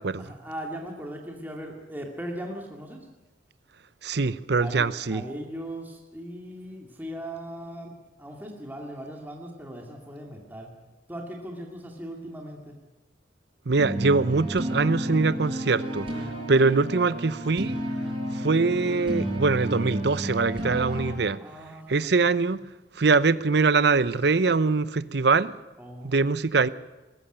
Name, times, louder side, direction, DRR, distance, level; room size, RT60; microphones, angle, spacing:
voice 1, 0.2-3.1 4.6-10.7 11.1-12.8 21.4-22.1 25.8-26.3, right 1 dB, 10° right, 2.3 m, -39 dB
voice 2, 4.0-5.2 13.7-16.1 16.5-17.8 18.3-21.4 21.9-22.6 23.0-25.5 26.0-26.7, right 4 dB, 65° right, 0.7 m, -23 dB
sound 1, 13.8-21.1, equal, 30° right, 6.8 m, -31 dB
21.5 x 14.5 x 9.1 m
head